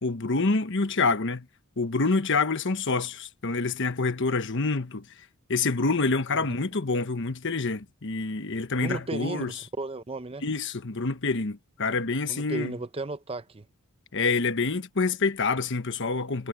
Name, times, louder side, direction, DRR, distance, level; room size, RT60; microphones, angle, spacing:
voice 1, 0.0-1.4 1.8-5.0 5.5-9.5 10.4-12.7 14.1-16.5, left 3 dB, 60° left, 1.2 m, -27 dB
voice 2, 8.8-10.4 12.3-13.7, right 2 dB, 25° right, 0.7 m, -34 dB
head